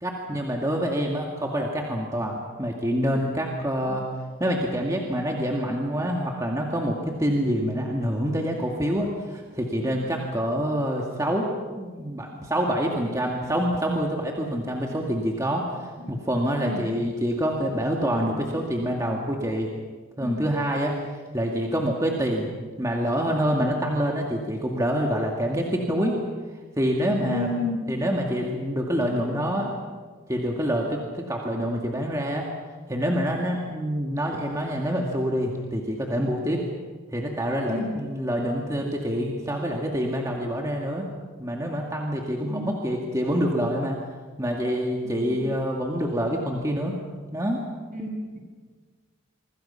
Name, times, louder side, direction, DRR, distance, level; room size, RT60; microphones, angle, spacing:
voice 1, 0.0-4.1 4.4-11.5 11.8-19.7 20.2-22.5 22.8-26.2 26.8-27.5 27.9-29.7 30.3-32.5 32.9-36.6 37.1-41.1 41.4-44.0 44.4-47.0 47.3-47.6, equal, 15° right, -1 dB, 2.2 m, -26 dB
voice 2, 27.2-27.8 29.2-29.7 37.7-37.9 42.4-42.7 47.9-48.1, left 2 dB, 40° right, 0 dB, 5.8 m, -31 dB
26.5 x 25.0 x 5.8 m, 1.5 s
head